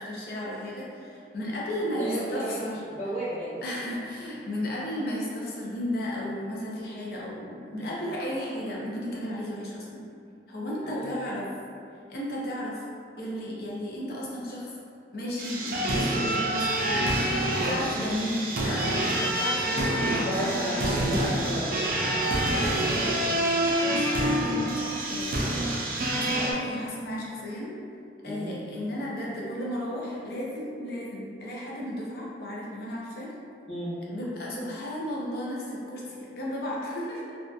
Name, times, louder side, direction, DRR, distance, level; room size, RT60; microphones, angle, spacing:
voice 1, 0.0-2.8 3.6-10.0 10.5-11.5 12.1-12.8 13.2-14.8 15.1-21.1 22.5-22.9 23.6-25.6 26.1-27.7 28.2-33.3 34.1-37.3, left 1 dB, 55° left, -5 dB, 0.5 m, -34 dB
voice 2, 1.9-2.5 2.8-3.6 7.8-8.0 10.8-11.1 17.6-17.8 20.2-22.1 22.5-23.3 26.2-26.4 28.2-28.5 33.7-33.9, equal, 35° left, -12 dB, 0.9 m, -33 dB
sound 1, 15.4-26.5, right 1 dB, 50° right, 0.3 m, -27 dB
2.6 x 2.3 x 2.3 m, 2.3 s
head